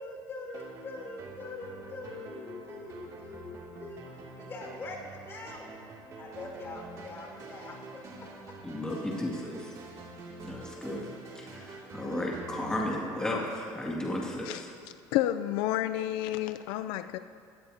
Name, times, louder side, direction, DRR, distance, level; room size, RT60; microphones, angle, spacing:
voice 1, 0.0-4.0 4.4-5.7 6.2-8.3, left 2 dB, 30° left, 0 dB, 4.9 m, -43 dB
sound 1, 0.5-14.1, right 3 dB, 45° right, 2.6 m, -47 dB
voice 2, 8.6-9.7 10.4-11.1 11.3-14.7, left 1 dB, 10° left, -3 dB, 2.3 m, -34 dB
voice 3, 15.1-17.2, left 13 dB, 85° left, 11 dB, 0.4 m, -30 dB
23.0 x 18.0 x 2.9 m, 2.4 s
cardioid pair, 130°, 8 cm